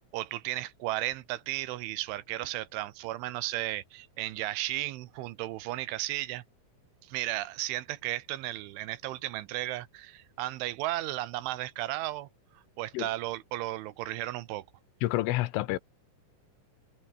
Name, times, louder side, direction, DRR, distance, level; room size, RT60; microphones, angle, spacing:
voice 1, 0.0-6.4 7.0-12.3 12.5-14.6, right 16 dB, 80° right, 3.4 m, -34 dB
voice 2, 15.0-15.8, left 17 dB, 80° left, 3.5 m, -28 dB
omnidirectional pair, 5.7 m